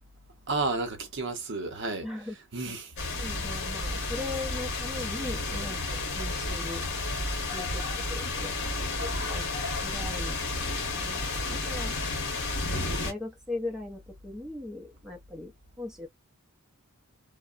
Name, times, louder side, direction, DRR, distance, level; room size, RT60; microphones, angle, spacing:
voice 1, 0.5-2.1 2.5-2.9, right 3 dB, 55° right, 0.7 m, -31 dB
voice 2, 2.0-2.4 2.6-2.8 3.2-6.8 7.5-8.5 9.0-9.5 9.8-10.4 10.9-12.0 12.6-16.1, left 2 dB, 5° right, 0.6 m, -39 dB
sound 1, 3.0-13.1, left 3 dB, 55° left, 1.0 m, -31 dB
2.8 x 2.1 x 2.4 m
head